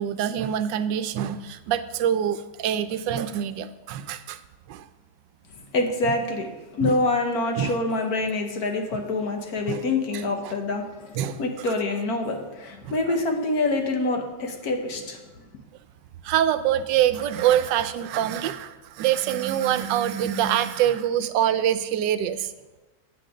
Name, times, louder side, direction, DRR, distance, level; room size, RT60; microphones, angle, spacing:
voice 1, 0.0-4.4 4.7-4.8 6.8-7.0 7.6-7.7 9.7-9.8 10.1-10.5 11.2-11.7 12.8-13.2 16.2-22.5, right 10 dB, 85° right, 12 dB, 1.3 m, -25 dB
voice 2, 5.7-15.4, left 2 dB, 60° left, 4 dB, 1.5 m, -26 dB
8.9 x 7.8 x 5.0 m, 1.1 s
omnidirectional pair, 1.9 m